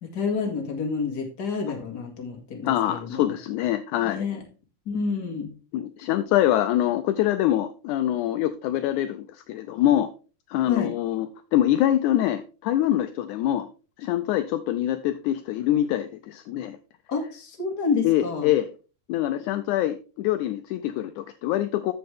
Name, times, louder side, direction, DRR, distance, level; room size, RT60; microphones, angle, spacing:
voice 1, 0.0-3.3 4.0-4.4 4.9-5.5 10.6-10.9 17.1-18.5, left 5 dB, 35° left, 2 dB, 2.1 m, -29 dB
voice 2, 2.6-4.3 5.7-10.1 10.5-13.7 14.0-16.8 18.0-18.7 19.1-21.9, left 12 dB, 80° left, 10 dB, 1.9 m, -24 dB
13.5 x 5.2 x 3.4 m, 0.34 s
omnidirectional pair, 3.7 m